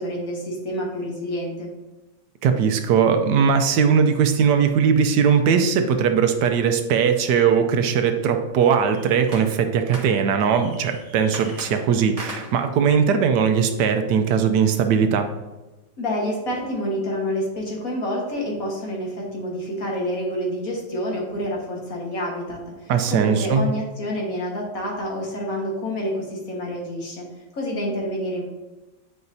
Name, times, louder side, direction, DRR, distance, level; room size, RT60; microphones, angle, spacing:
voice 1, 0.0-1.7 16.0-27.3 27.5-28.4, equal, 50° left, -1 dB, 1.8 m, -28 dB
voice 2, 2.4-15.3 22.9-23.7, right 6 dB, 75° right, 6 dB, 1.2 m, -19 dB
sound 1, 8.6-14.1, right 1 dB, 20° right, 1.6 m, -41 dB
9.7 x 4.8 x 2.7 m, 1.1 s
omnidirectional pair, 1.9 m